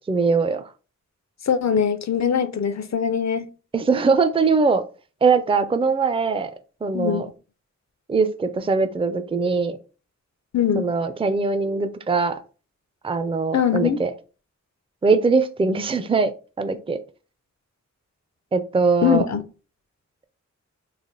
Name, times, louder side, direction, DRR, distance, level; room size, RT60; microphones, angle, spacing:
voice 1, 0.1-0.6 3.7-4.8 5.2-6.5 6.8-7.3 8.1-9.8 10.8-12.4 13.0-14.1 15.0-16.3 16.6-17.0 18.5-19.3, right 4 dB, 20° right, 0.4 m, -21 dB
voice 2, 1.5-3.5 6.9-7.2 10.5-10.9 13.5-14.0 19.0-19.4, left 8 dB, 65° left, 0.5 m, -22 dB
3.3 x 2.1 x 3.7 m
wide cardioid pair, 45°, 30 cm